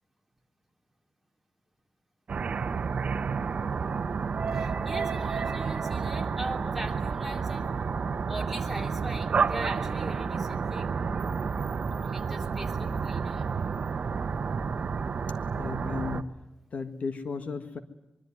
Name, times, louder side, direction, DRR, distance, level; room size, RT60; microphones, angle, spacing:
sound 1, 2.3-16.2, right 5 dB, 60° right, 1.0 m, -30 dB
voice 1, 4.5-7.7 8.3-10.9 12.0-13.5, right 1 dB, 5° right, 1 dB, 3.1 m, -40 dB
voice 2, 15.5-16.3 16.7-17.8, left 5 dB, 65° left, 8 dB, 1.7 m, -34 dB
24.5 x 24.0 x 9.5 m, 0.93 s
wide cardioid pair, 165°, 3 cm